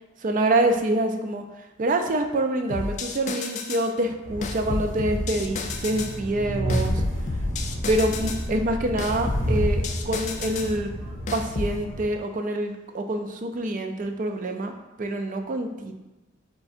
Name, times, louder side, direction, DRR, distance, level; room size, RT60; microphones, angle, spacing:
voice 1, 0.2-1.4 1.8-7.0 7.9-10.9 11.3-14.7 15.0-15.9, right 1 dB, 40° right, 5 dB, 0.4 m, -26 dB
sound 1, 2.7-3.9 4.4-6.2 6.7-8.5 9.0-10.7 11.3-11.8, left 3 dB, 40° left, 0.3 m, -31 dB
Train, 4.2-12.0, equal, 80° right, 1.5 m, -30 dB
4.9 x 3.7 x 2.5 m, 1.0 s
head